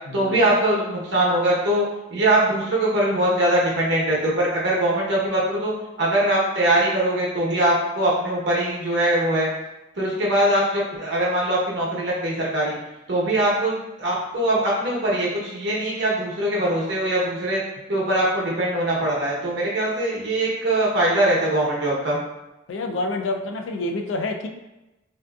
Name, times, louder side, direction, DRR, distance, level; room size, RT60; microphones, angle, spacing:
voice 1, 0.1-1.8 2.1-5.7 6.0-9.5 10.0-12.8 13.1-17.6 17.9-22.2, right 1 dB, 65° right, -4 dB, 0.9 m, -22 dB
voice 2, 22.7-24.5, left 2 dB, 90° left, 4 dB, 0.4 m, -27 dB
3.4 x 2.7 x 2.3 m, 0.98 s
head